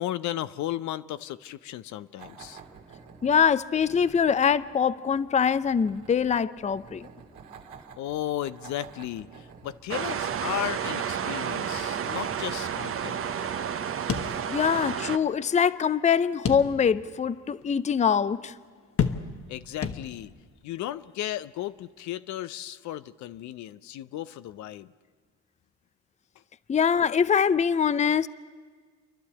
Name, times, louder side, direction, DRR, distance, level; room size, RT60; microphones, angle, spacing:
voice 1, 0.0-2.6 8.0-13.2 19.5-20.3 20.6-24.9, left 13 dB, 70° left, 0.6 m, -35 dB
sound 1, 2.2-14.4, right 5 dB, 85° right, 2.3 m, -51 dB
voice 2, 3.2-7.1 14.5-18.5 26.7-28.3, left 7 dB, 25° left, 0.5 m, -23 dB
sound 2, 9.9-15.2, right 8 dB, 45° right, 0.9 m, -31 dB
sound 3, 14.1-15.0 15.3-15.4 16.5-17.1 17.6-17.7 19.0-19.5 19.8-20.5, left 7 dB, 45° left, 1.1 m, -30 dB
29.5 x 11.5 x 8.4 m
supercardioid pair, 70°, 30 cm